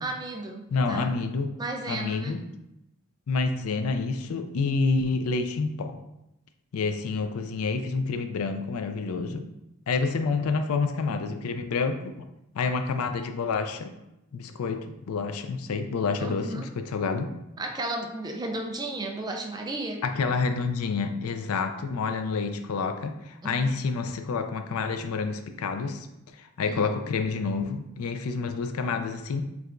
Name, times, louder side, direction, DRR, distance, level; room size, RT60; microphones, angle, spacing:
voice 1, 0.0-1.1 1.6-2.4 16.2-16.7 17.6-20.0 23.4-23.8 26.7-26.9, right 2 dB, 20° right, 2 dB, 0.3 m, -34 dB
voice 2, 0.7-1.5 1.9-2.4 3.3-6.0 6.7-9.5 9.9-12.3 12.5-13.9 14.3-17.3 20.0-26.1 26.4-29.4, left 4 dB, 85° left, 8 dB, 0.4 m, -28 dB
4.7 x 3.3 x 2.5 m, 0.88 s
head